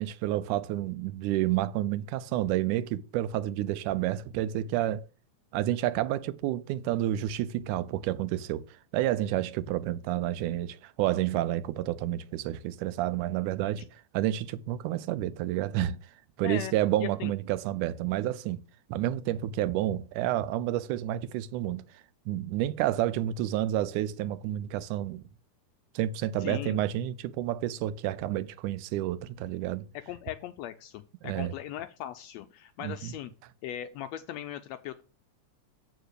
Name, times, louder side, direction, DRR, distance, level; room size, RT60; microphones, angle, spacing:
voice 1, 0.0-5.1 5.5-16.0 16.4-18.6 18.9-25.2 26.0-29.9 31.2-31.5 32.8-33.1, right 13 dB, 90° right, 2.1 m, -30 dB
voice 2, 26.4-26.8 30.1-33.3 33.6-35.0, left 12 dB, 80° left, 1.6 m, -38 dB
8.1 x 4.9 x 6.5 m
omnidirectional pair, 3.5 m